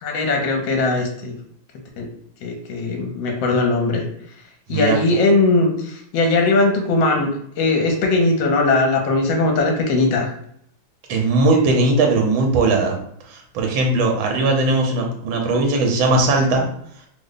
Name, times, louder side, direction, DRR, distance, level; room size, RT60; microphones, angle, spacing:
voice 1, 0.0-1.3 2.0-2.1 2.4-4.0 4.7-10.3, left 2 dB, 75° left, 2 dB, 1.4 m, -19 dB
voice 2, 11.1-13.0 13.3-16.7, right 2 dB, 75° right, 1 dB, 1.4 m, -19 dB
3.3 x 2.1 x 3.8 m, 0.68 s
omnidirectional pair, 2.2 m